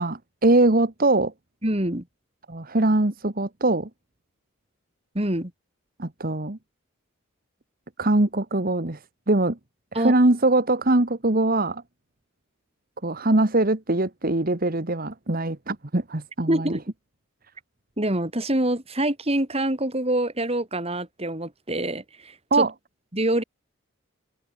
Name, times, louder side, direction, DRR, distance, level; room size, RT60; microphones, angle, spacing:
voice 1, 0.0-1.3 2.5-3.9 6.0-6.6 8.0-9.0 9.3-9.6 9.9-11.8 13.0-16.7 22.5-22.7, right 2 dB, 45° right, 1.5 m, -22 dB
voice 2, 1.6-2.1 5.1-5.5 9.9-10.1 16.5-16.8 18.0-22.7 23.1-23.4, right 1 dB, 30° right, 3.6 m, -25 dB
head